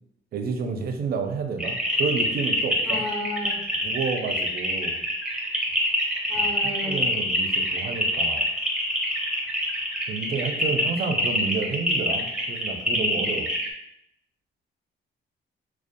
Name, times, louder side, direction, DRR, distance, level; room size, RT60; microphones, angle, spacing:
voice 1, 0.3-3.0 3.8-5.0 6.4-8.5 10.1-13.5, right 5 dB, 50° right, 5 dB, 0.4 m, -30 dB
sound 1, 1.6-13.7, equal, 5° right, 0.6 m, -26 dB
voice 2, 2.8-3.6 6.3-7.1, left 1 dB, 25° left, -7 dB, 1.1 m, -32 dB
2.4 x 2.1 x 2.5 m, 0.77 s
cardioid pair, 90°, 20 cm